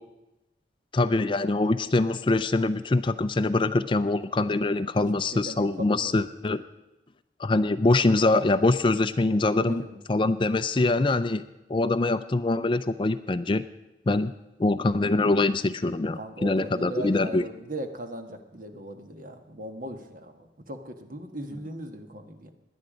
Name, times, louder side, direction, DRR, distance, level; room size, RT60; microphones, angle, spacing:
voice 1, 0.9-6.6 7.4-9.8 10.1-11.4 11.7-13.6 14.1-14.3 14.6-17.4, left 2 dB, 30° left, 13 dB, 0.4 m, -24 dB
voice 2, 5.3-6.3 9.6-10.0 16.1-22.5, right 1 dB, 50° right, 6 dB, 1.4 m, -38 dB
17.5 x 11.0 x 5.1 m, 0.97 s
head